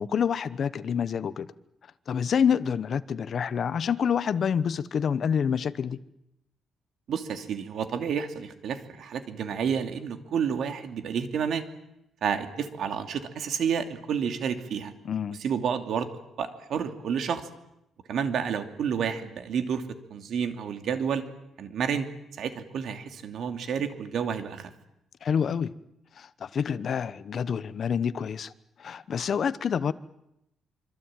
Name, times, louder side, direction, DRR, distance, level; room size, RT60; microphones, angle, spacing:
voice 1, 0.0-1.5 2.1-6.0 15.0-15.4 25.2-25.7 26.2-28.5 28.8-29.9, left 7 dB, 40° left, 15 dB, 1.0 m, -27 dB
voice 2, 7.1-11.6 12.2-14.9 15.4-16.1 16.4-17.5 18.1-19.8 20.1-21.2 21.6-22.1 22.4-24.7, right 7 dB, 55° right, 7 dB, 2.7 m, -30 dB
26.0 x 24.5 x 9.0 m, 0.84 s
cardioid pair, 160°, 0 cm